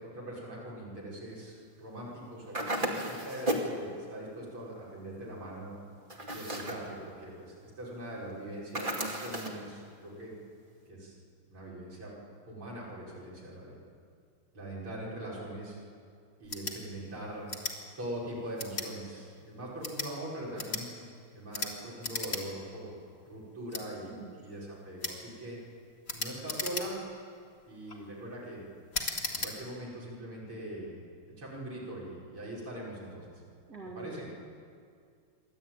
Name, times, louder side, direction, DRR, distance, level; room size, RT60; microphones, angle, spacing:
voice 1, 0.0-5.7 6.3-10.3 10.9-11.1 11.5-12.1 12.5-13.8 14.5-15.8 16.4-17.5 18.0-20.9 21.3-23.0 23.2-25.6 26.1-27.0 27.7-28.6 29.3-33.3 34.0-34.3, right 1 dB, 70° right, -6 dB, 6.1 m, -42 dB
sound 1, 2.5-3.8 6.1-6.9 8.7-9.6, right 1 dB, 25° right, 2.3 m, -33 dB
sound 2, 16.4-16.8 17.5-17.8 18.6-18.9 19.7-20.1 20.6-20.8 21.5-21.7 22.0-22.4 22.8-22.9 23.7-23.8 25.0-25.2 26.1-27.1 27.7-28.0 28.9-29.5, left 3 dB, 30° left, 2.3 m, -36 dB
voice 2, 33.7-34.3, right 3 dB, 45° right, -3 dB, 2.7 m, -44 dB
27.5 x 12.5 x 9.0 m, 2.3 s
omnidirectional pair, 2.4 m